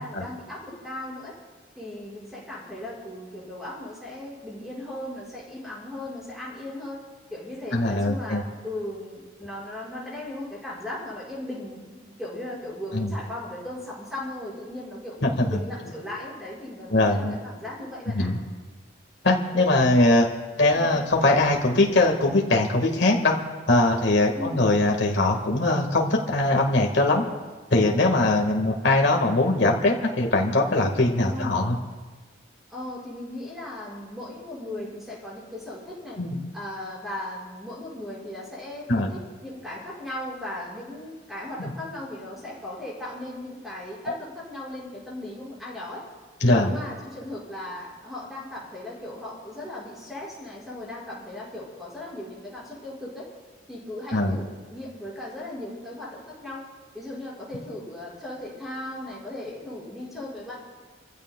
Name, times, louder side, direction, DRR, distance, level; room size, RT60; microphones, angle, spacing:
voice 1, 0.0-1.4 1.8-7.0 7.3-15.2 15.5-18.3 20.7-20.9 24.4-24.7 31.3-31.6 32.7-36.2 36.5-46.1 46.4-53.3 53.7-56.6 56.9-60.6, left 1 dB, ahead, -6 dB, 5.4 m, -37 dB
voice 2, 7.7-8.4 12.9-13.1 15.2-15.6 16.9-17.4 18.1-18.4 19.2-20.3 20.6-23.4 23.7-27.2 27.7-31.8 36.2-36.4 38.9-39.1 41.6-41.7 46.4-46.7 54.1-54.4, left 2 dB, 60° left, 1 dB, 1.6 m, -21 dB
29.5 x 15.5 x 2.3 m, 1.3 s
head